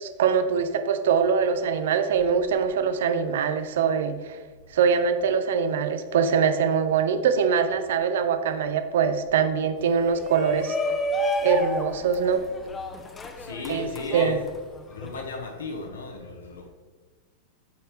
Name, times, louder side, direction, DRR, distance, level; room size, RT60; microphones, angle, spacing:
voice 1, 0.0-4.4 4.7-10.8 11.4-12.4 13.7-13.9 14.1-14.4, right 6 dB, 60° right, 10 dB, 0.5 m, -23 dB
Shout, 10.1-15.2, equal, 15° left, 0.6 m, -30 dB
voice 2, 13.4-14.4 14.9-16.7, left 3 dB, 65° left, 2 dB, 0.8 m, -35 dB
8.2 x 4.2 x 3.2 m, 1.3 s
figure-of-eight pair, 90°, 0 cm